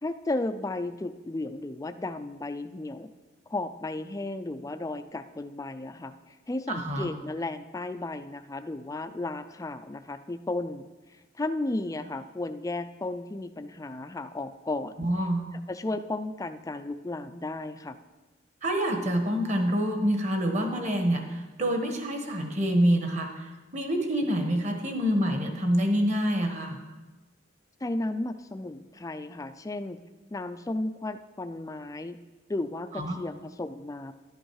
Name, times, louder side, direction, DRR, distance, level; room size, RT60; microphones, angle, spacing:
voice 1, 0.0-3.1 3.5-10.8 11.4-15.1 15.7-18.0 27.8-30.0 30.3-32.2 32.5-34.1, left 2 dB, 15° left, 10 dB, 0.4 m, -34 dB
voice 2, 6.7-7.1 15.0-15.5 18.6-26.8 32.9-33.2, equal, 35° right, 4 dB, 1.2 m, -27 dB
11.0 x 9.0 x 4.7 m, 1.2 s
head